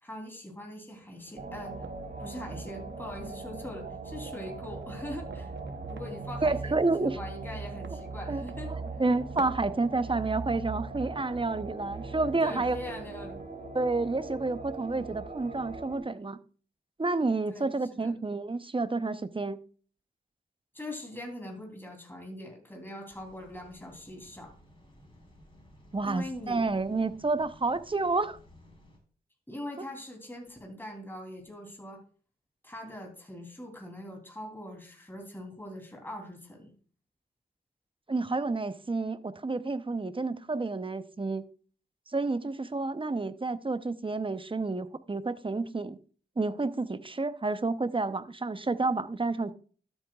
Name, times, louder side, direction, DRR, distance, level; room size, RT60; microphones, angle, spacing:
voice 1, 0.0-1.7 2.2-5.5 5.9-8.7 12.4-13.4 17.5-18.1 20.7-24.5 26.0-26.6 29.5-32.0 32.6-36.7, left 1 dB, 10° left, 3.2 m, -42 dB
sound 1, 0.9-13.7, right 5 dB, 75° right, 0.9 m, -53 dB
sound 2, 1.4-16.0, right 3 dB, 45° right, 2.5 m, -40 dB
voice 2, 6.4-7.2 8.3-12.8 13.7-16.4 17.0-19.6 25.9-28.4 38.1-41.4 42.1-46.0 46.4-49.5, right 3 dB, 30° right, 0.7 m, -30 dB
sound 3, 23.1-29.0, left 1 dB, 30° left, 3.7 m, -56 dB
12.5 x 7.9 x 2.4 m
cardioid pair, 50°, 19 cm